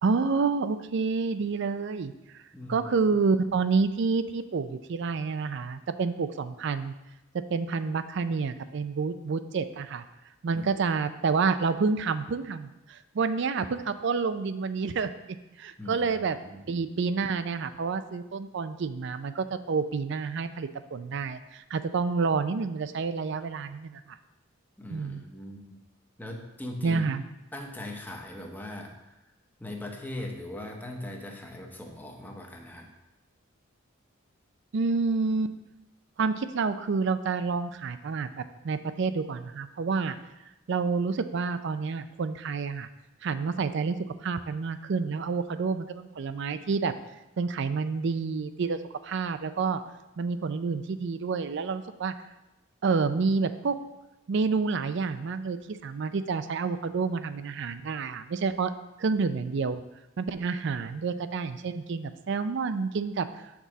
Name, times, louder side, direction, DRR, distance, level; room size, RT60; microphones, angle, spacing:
voice 1, 0.0-2.1 2.7-6.9 7.3-10.0 10.4-15.1 15.6-16.4 16.7-24.2 24.9-25.2 26.8-27.2 34.7-35.5 36.2-40.2 40.7-42.9 43.2-46.9 47.4-49.8 50.2-52.1 52.8-53.8 54.3-58.7 59.0-59.8 60.2-63.3, right 4 dB, 60° right, 11 dB, 0.4 m, -29 dB
voice 2, 2.5-2.9 10.5-10.7 15.8-16.7 24.8-25.8 26.2-27.2 27.5-29.1 29.6-32.9, left 1 dB, 10° left, 1 dB, 0.8 m, -40 dB
6.0 x 4.1 x 6.1 m, 0.96 s
head